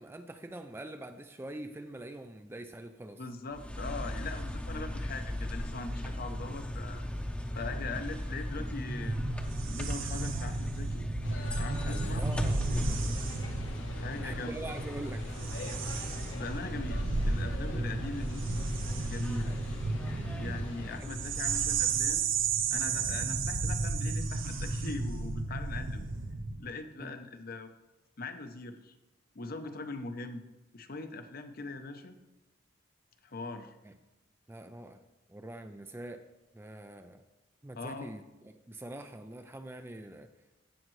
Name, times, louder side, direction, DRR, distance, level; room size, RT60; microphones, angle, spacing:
voice 1, 0.0-3.2 11.9-12.7 14.2-15.3 20.8-21.1 27.0-27.2 33.8-33.9 34.5-35.0 35.3-36.2 36.5-37.2 37.6-40.3, right 1 dB, 10° right, 8 dB, 0.4 m, -44 dB
voice 2, 3.2-7.0 7.5-9.2 9.7-11.1 11.6-12.2 13.9-14.6 16.3-18.5 19.0-19.5 20.4-22.2 22.7-26.1 26.6-27.7 28.2-28.9 29.3-30.4 30.7-32.1 33.2-33.7 37.8-38.1, left 3 dB, 45° left, 8 dB, 0.7 m, -41 dB
sound 1, 3.5-22.0, equal, 5° left, 0.8 m, -38 dB
sound 2, 9.1-26.6, right 3 dB, 70° right, 0.8 m, -33 dB
sound 3, 11.2-21.0, left 2 dB, 65° left, 1.2 m, -45 dB
16.0 x 6.4 x 3.2 m, 1.0 s
head